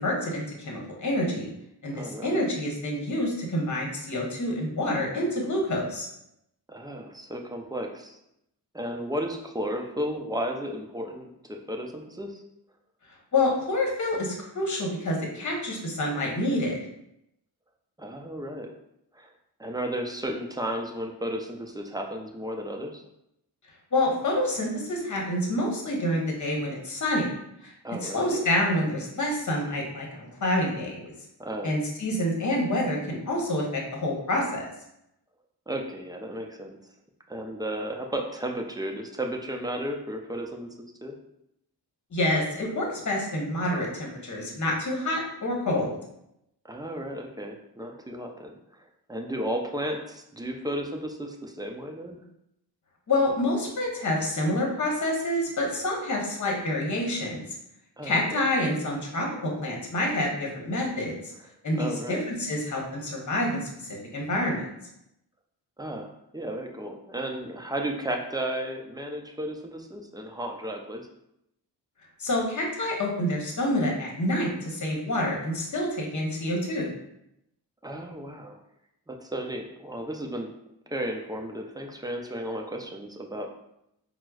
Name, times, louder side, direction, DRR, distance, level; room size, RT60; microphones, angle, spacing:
voice 1, 0.0-1.5 1.8-6.1 13.3-16.8 23.9-27.3 27.6-27.7 28.0-31.1 31.6-34.6 42.1-46.0 53.1-57.4 58.0-61.3 61.6-64.7 72.2-76.9, left 1 dB, 45° left, -1 dB, 1.0 m, -27 dB
voice 2, 1.9-2.4 6.7-8.2 8.7-12.4 18.0-18.7 19.1-19.3 19.6-23.0 27.8-28.4 31.4-31.7 35.7-36.8 37.3-40.7 41.0-41.1 46.6-52.2 58.0-58.4 61.7-62.2 65.8-71.0 77.8-78.6 79.1-80.5 80.9-83.5, right 1 dB, 10° right, 2 dB, 0.4 m, -34 dB
4.4 x 2.1 x 2.3 m, 0.81 s
cardioid pair, 55°, 42 cm